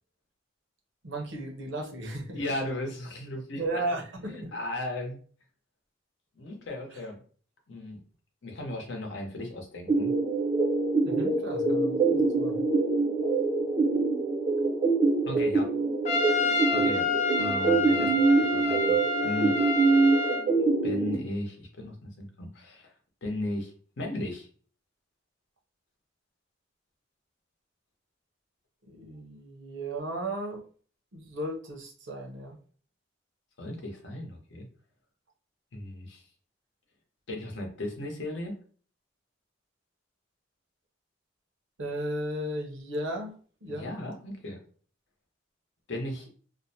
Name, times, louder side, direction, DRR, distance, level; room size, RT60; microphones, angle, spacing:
voice 1, 1.0-2.4 3.6-4.6 6.9-7.0 11.0-12.6 28.9-30.6 31.1-32.6 41.8-43.3 43.6-43.9, right 1 dB, 75° right, 2 dB, 0.7 m, -35 dB
voice 2, 2.3-3.8 4.3-5.2 6.3-7.2 7.7-8.0 8.4-10.1 15.2-15.7 16.7-17.1 17.3-19.5 20.8-22.9 23.2-24.5 33.6-34.7 35.7-36.3 37.3-38.6 43.7-44.6 45.9-46.3, left 1 dB, 65° left, 2 dB, 0.7 m, -36 dB
sound 1, 9.9-21.1, right 3 dB, 30° right, 0.4 m, -25 dB
Trumpet, 16.1-20.5, left 3 dB, 35° left, 0.4 m, -28 dB
2.5 x 2.0 x 2.7 m, 0.42 s
head